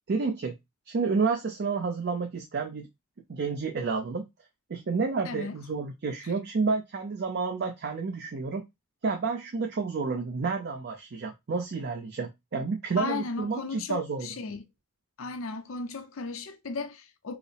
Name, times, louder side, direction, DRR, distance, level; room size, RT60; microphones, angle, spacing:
voice 1, 0.1-0.5 0.9-2.9 3.3-4.2 4.7-8.6 9.0-14.3, right 4 dB, 50° right, 0.5 m, -30 dB
voice 2, 5.3-5.6 13.0-14.6 15.2-17.4, left 4 dB, 75° left, 0.6 m, -35 dB
4.7 x 2.0 x 3.3 m
head